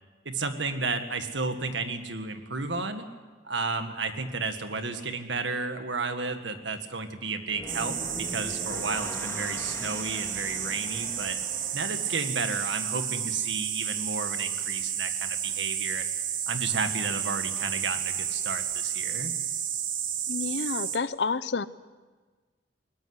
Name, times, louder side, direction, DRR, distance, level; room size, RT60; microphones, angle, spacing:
voice 1, 0.3-3.1 3.4-11.4 11.7-16.1 16.5-19.3, right 4 dB, 75° right, 7 dB, 1.8 m, -32 dB
sound 1, 7.4-12.5, left 1 dB, 15° left, 2.8 m, -41 dB
sound 2, 7.7-21.0, right 9 dB, 45° right, 1.5 m, -32 dB
voice 2, 20.3-21.7, left 4 dB, 65° left, 16 dB, 0.7 m, -29 dB
21.0 x 20.0 x 8.0 m, 1.4 s
head